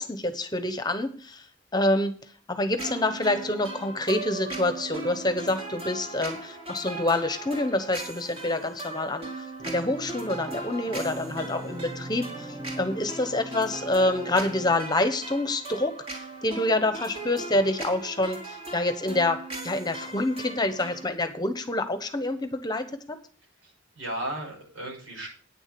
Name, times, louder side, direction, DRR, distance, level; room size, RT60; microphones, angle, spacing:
voice 1, 0.0-1.4 1.7-2.2 2.5-23.2, left 2 dB, 20° left, 9 dB, 1.1 m, -27 dB
sound 1, 2.8-21.1, right 2 dB, 30° right, 3.3 m, -39 dB
Organ, 9.6-15.3, right 1 dB, 15° right, 1.0 m, -41 dB
voice 2, 23.6-25.3, right 1 dB, 85° right, -1 dB, 6.3 m, -35 dB
9.5 x 7.2 x 6.9 m, 0.42 s
head